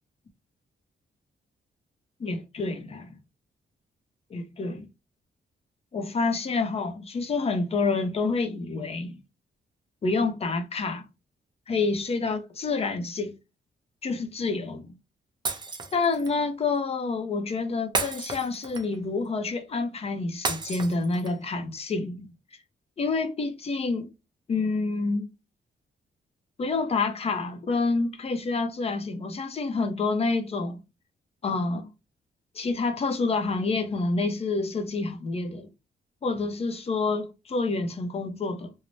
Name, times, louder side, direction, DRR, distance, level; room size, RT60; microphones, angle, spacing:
voice 1, 2.2-3.1 4.3-4.9 5.9-9.1 10.0-11.1 11.7-13.3 14.0-14.9 15.9-22.3 23.0-24.1 24.5-25.3 26.6-30.8 31.4-31.9 32.5-35.7 36.2-38.7, left 3 dB, 35° left, 0.6 m, -28 dB
Shatter, 15.5-16.3 17.9-19.0 20.5-21.5, right 4 dB, 25° right, 0.5 m, -32 dB
3.1 x 2.0 x 2.5 m
wide cardioid pair, 165°, 19 cm